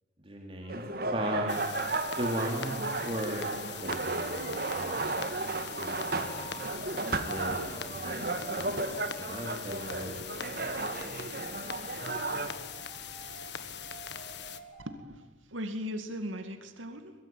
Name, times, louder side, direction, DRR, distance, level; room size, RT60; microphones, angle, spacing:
voice 1, 0.2-1.6 2.1-2.7 3.0-3.5 3.8-4.4 4.7-5.1 5.7-6.4 7.2-8.8 9.2-10.3, right 1 dB, 30° right, 1 dB, 3.0 m, -37 dB
sound 1, 0.6-15.0, equal, 30° left, 6.0 m, -49 dB
sound 2, 0.7-12.5, right 3 dB, 50° right, 2.0 m, -34 dB
sound 3, 1.5-14.6, left 8 dB, 60° left, 1.6 m, -42 dB
voice 2, 14.8-17.1, equal, 85° right, 7 dB, 2.3 m, -38 dB
24.0 x 22.0 x 9.2 m, 1.2 s
head